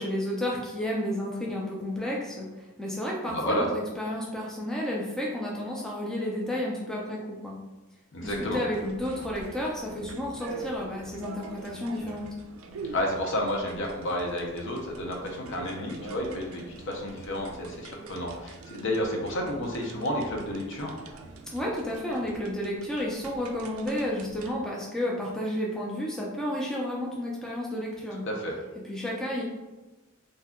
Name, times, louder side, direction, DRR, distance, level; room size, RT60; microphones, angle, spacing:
voice 1, 0.0-7.6 8.2-12.3 21.5-28.3 28.8-29.4, left 1 dB, 5° left, -3 dB, 0.4 m, -31 dB
voice 2, 3.3-3.7 8.1-8.6 12.9-21.0 28.2-28.6, left 1 dB, 60° left, 0 dB, 0.6 m, -31 dB
sound 1, 8.2-24.6, right 3 dB, 75° right, 0.3 m, -45 dB
2.7 x 2.2 x 3.5 m, 1.1 s
head